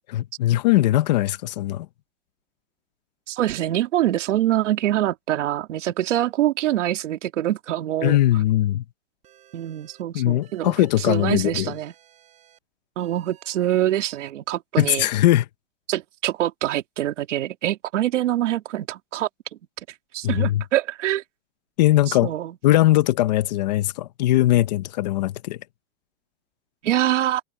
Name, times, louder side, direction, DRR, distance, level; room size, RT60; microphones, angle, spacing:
voice 1, 0.1-1.9 8.0-8.8 10.1-11.7 14.8-15.4 20.2-20.6 21.8-22.3 22.6-25.6, left 15 dB, 35° left, 0.7 m, -20 dB
voice 2, 3.3-8.2 9.5-11.9 13.0-15.1 15.9-19.3 20.1-21.2 22.1-22.5 26.8-27.4, right 13 dB, 75° right, 2.4 m, -24 dB
sound 1, 9.2-10.0 10.4-11.3 11.7-12.6 13.0-14.3, right 12 dB, 20° right, 4.0 m, -54 dB
supercardioid pair, 175°, 37 cm